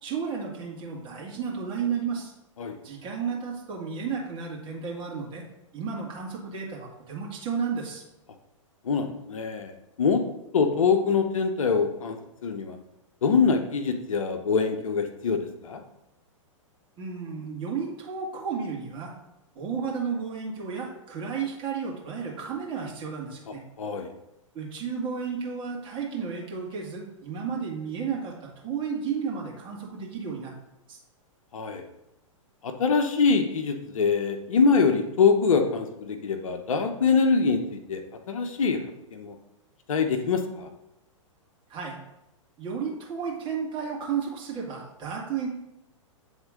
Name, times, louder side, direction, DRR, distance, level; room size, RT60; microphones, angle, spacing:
voice 1, 0.0-2.3 2.8-5.4 5.7-8.0 17.0-19.1 19.6-23.6 24.5-30.5 30.9-31.0 41.7-42.0 42.6-45.5, right 6 dB, 30° right, -2 dB, 2.0 m, -32 dB
voice 2, 8.8-10.2 10.5-12.2 12.4-12.8 13.2-15.8 23.5-24.1 31.5-31.8 32.6-38.0 38.3-38.8 39.1-39.4 39.9-40.7, left 5 dB, 75° left, 6 dB, 0.8 m, -24 dB
8.9 x 3.6 x 3.7 m, 0.88 s
hypercardioid pair, 115°, 17 cm